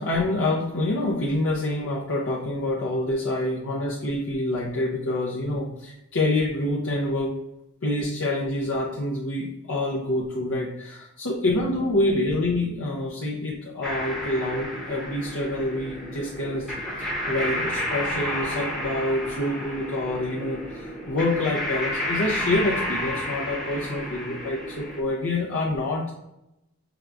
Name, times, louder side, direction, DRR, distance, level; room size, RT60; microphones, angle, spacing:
voice 1, 0.0-7.3 7.8-16.7 17.0-26.1, left 1 dB, 60° left, -5 dB, 0.8 m, -27 dB
sound 1, 13.8-25.0, left 1 dB, ahead, 0.9 m, -31 dB
6.0 x 3.4 x 2.5 m, 0.88 s
head